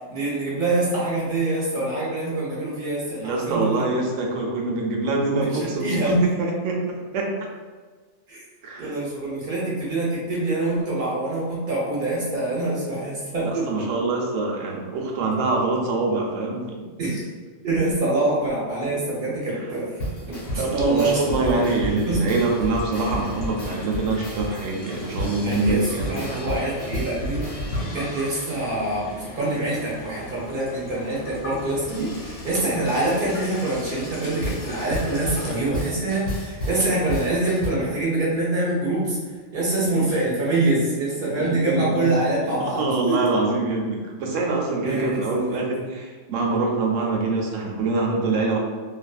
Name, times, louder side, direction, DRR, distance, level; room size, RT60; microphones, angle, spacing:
voice 1, 0.1-3.8 5.4-6.1 8.3-8.4 8.8-13.9 17.0-17.2 17.6-19.8 20.5-22.3 25.4-39.2 39.5-43.1 44.8-45.4, right 2 dB, 50° right, -6 dB, 0.9 m, -25 dB
voice 2, 3.2-7.3 8.6-8.9 13.4-16.8 19.5-19.6 20.6-26.5 41.4-42.1 42.6-48.6, right 3 dB, 90° right, 0 dB, 0.9 m, -25 dB
sound 1, 20.0-29.2 34.4-37.7, equal, 70° left, 1.3 m, -32 dB
Water tap faucet / Sink (filling or washing), 20.4-35.7, left 1 dB, 85° left, 1.2 m, -40 dB
2.6 x 2.5 x 2.3 m, 1.4 s
omnidirectional pair, 1.3 m